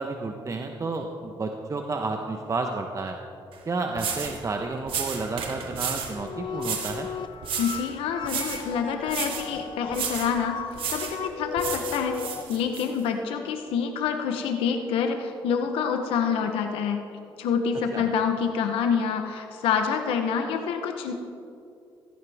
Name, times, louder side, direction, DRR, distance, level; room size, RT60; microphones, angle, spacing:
voice 1, 0.0-3.2 3.7-7.1 17.9-18.1, right 3 dB, 35° right, 4 dB, 1.1 m, -31 dB
sound 1, 3.5-3.6 4.0-4.4 4.9-6.2 6.6-7.0 7.4-7.9 8.2-8.7 9.1-9.5 9.9-10.3 10.8-11.2 11.6-12.9, right 7 dB, 75° right, 2.0 m, -32 dB
sound 2, 5.9-12.4, left 7 dB, 60° left, 0.6 m, -37 dB
voice 2, 7.6-10.6 10.9-17.0 17.4-21.1, left 6 dB, 90° left, 5 dB, 1.0 m, -27 dB
16.5 x 14.5 x 3.5 m, 2.5 s
cardioid pair, 70°, 9 cm